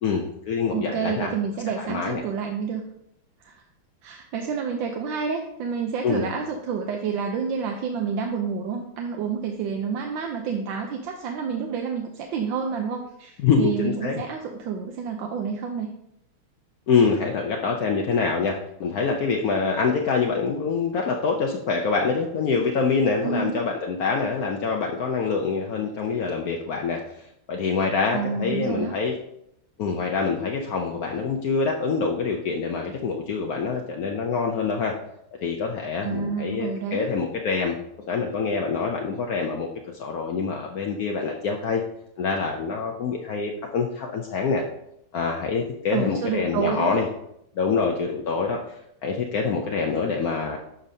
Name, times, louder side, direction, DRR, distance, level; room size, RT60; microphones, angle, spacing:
voice 1, 0.0-1.3 1.8-2.2 6.0-6.3 13.4-14.2 16.9-27.2 27.5-29.1 29.8-34.9 35.4-37.8 38.1-39.7 40.0-41.8 42.2-44.6 45.1-47.1 47.6-48.7 49.0-50.6, left 5 dB, 75° left, 1 dB, 0.8 m, -25 dB
voice 2, 0.7-2.8 3.4-3.6 4.0-15.9 23.2-23.6 28.1-29.0 36.0-37.1 45.9-47.0, right 6 dB, 70° right, 3 dB, 1.2 m, -29 dB
11.5 x 5.1 x 2.7 m, 0.78 s
omnidirectional pair, 2.4 m